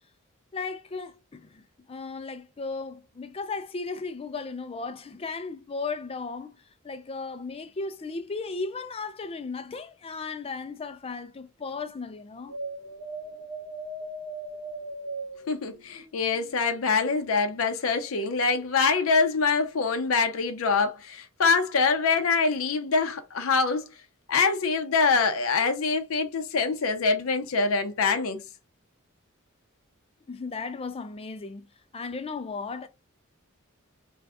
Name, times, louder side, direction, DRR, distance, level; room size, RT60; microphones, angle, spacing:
voice 1, 0.5-6.6 6.8-12.6 30.3-31.7 31.9-32.9, left 4 dB, 30° left, 0.4 m, -35 dB
sound 1, 12.5-16.7, right 2 dB, 65° right, 1.2 m, -38 dB
voice 2, 15.5-23.9 24.3-28.4, left 4 dB, 75° left, 0.5 m, -24 dB
2.6 x 2.4 x 3.3 m
head